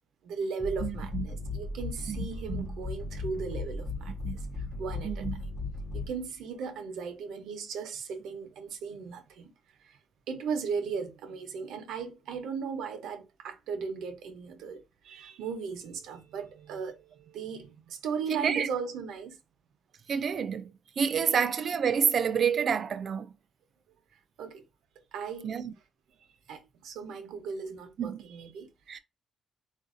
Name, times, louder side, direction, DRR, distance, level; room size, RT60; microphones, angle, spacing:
voice 1, 0.2-5.3 5.9-9.5 9.8-10.0 10.3-19.4 24.4-24.6 25.1-25.6 26.5-29.0, right 5 dB, 85° right, 0.7 m, -37 dB
sound 1, 0.6-6.4, left 3 dB, 20° left, 0.6 m, -36 dB
voice 2, 0.8-1.3 2.1-2.2 2.5-2.7 4.2-4.4 5.0-5.3 18.3-18.7 20.1-20.7 21.0-23.3 25.4-25.7 28.0-28.2 28.9-29.0, right 7 dB, 55° right, 0.4 m, -28 dB
3.7 x 2.5 x 2.5 m
cardioid pair, 90°, 0 cm